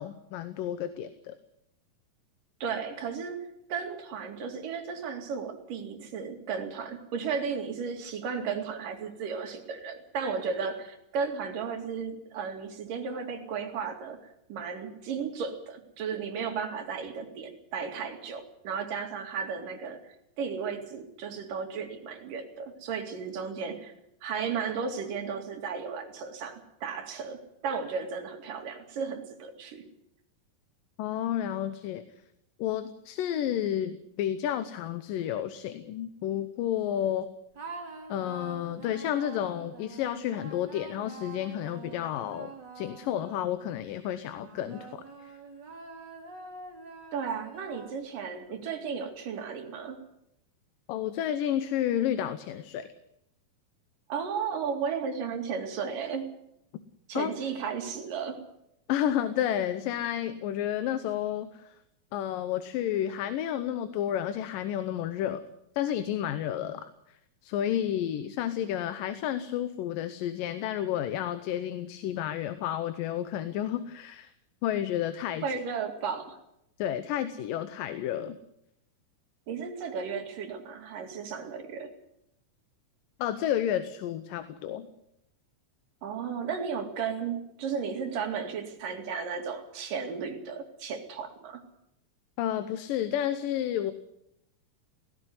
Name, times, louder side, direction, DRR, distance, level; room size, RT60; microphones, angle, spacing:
voice 1, 0.0-1.4 31.0-32.0 32.6-37.3 38.1-45.3 50.9-52.9 57.1-57.3 58.9-61.8 62.1-65.5 65.8-74.3 74.6-75.5 76.8-78.4 83.2-84.9 92.4-93.9, left 11 dB, 85° left, 11 dB, 2.6 m, -31 dB
voice 2, 2.6-14.2 14.5-23.9 24.2-29.8 47.1-50.0 54.1-56.3 57.1-58.4 75.4-76.4 79.5-81.9 86.0-91.6, right 6 dB, 75° right, 5 dB, 4.0 m, -34 dB
sound 1, 37.5-43.8 44.4-48.3, right 4 dB, 35° right, 2.9 m, -46 dB
17.5 x 16.5 x 9.5 m, 0.79 s
omnidirectional pair, 3.8 m